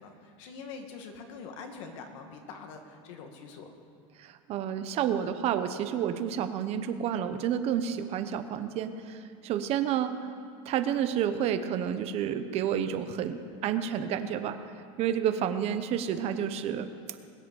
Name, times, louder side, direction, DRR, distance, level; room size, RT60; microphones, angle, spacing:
voice 1, 0.0-3.7, left 5 dB, 70° left, 4 dB, 2.2 m, -44 dB
voice 2, 4.2-10.1 10.7-14.6 15.0-17.2, right 9 dB, 40° right, 10 dB, 0.9 m, -30 dB
21.5 x 8.6 x 7.1 m, 2.5 s
supercardioid pair, 145°, 16 cm